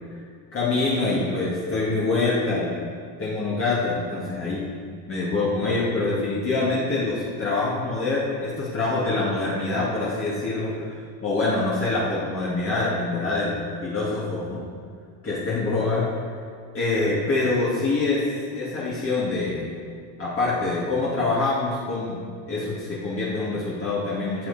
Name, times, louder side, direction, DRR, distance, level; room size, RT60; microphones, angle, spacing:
voice 1, 0.5-2.9 3.2-4.6 5.1-14.6 15.2-16.1 16.7-19.8 20.2-24.5, left 3 dB, 30° left, -7 dB, 2.3 m, -25 dB
14.5 x 7.4 x 4.3 m, 2.1 s
cardioid pair, 130°, 43 cm